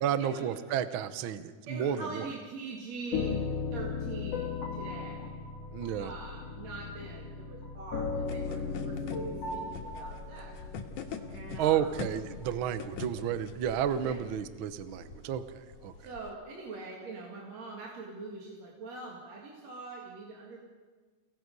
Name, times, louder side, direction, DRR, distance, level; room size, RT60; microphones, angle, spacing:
voice 1, 0.0-2.3 5.7-6.1 11.6-15.9, right 9 dB, 85° right, 11 dB, 1.1 m, -31 dB
voice 2, 1.7-3.4 3.7-5.3 6.0-9.2 9.5-10.5 11.3-11.9 14.0-14.2 16.0-20.6, right 3 dB, 55° right, -2 dB, 3.3 m, -43 dB
sound 1, 3.1-12.7, left 4 dB, 50° left, 2.9 m, -37 dB
sound 2, 8.3-16.3, left 6 dB, 75° left, 3.0 m, -45 dB
29.5 x 19.0 x 5.4 m, 1.4 s
omnidirectional pair, 3.7 m